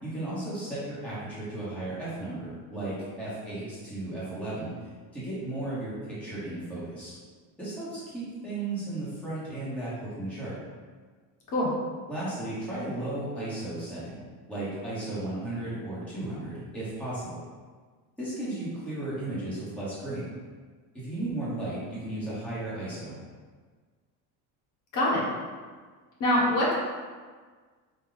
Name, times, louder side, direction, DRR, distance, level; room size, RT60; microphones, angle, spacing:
voice 1, 0.0-4.7 5.1-7.2 7.6-10.6 12.1-17.4 18.2-20.3 20.9-23.2, right 2 dB, 5° left, -11 dB, 1.0 m, -35 dB
voice 2, 26.2-26.7, left 1 dB, 55° left, -5 dB, 1.0 m, -24 dB
4.6 x 2.2 x 3.8 m, 1.5 s
cardioid pair, 180°, 39 cm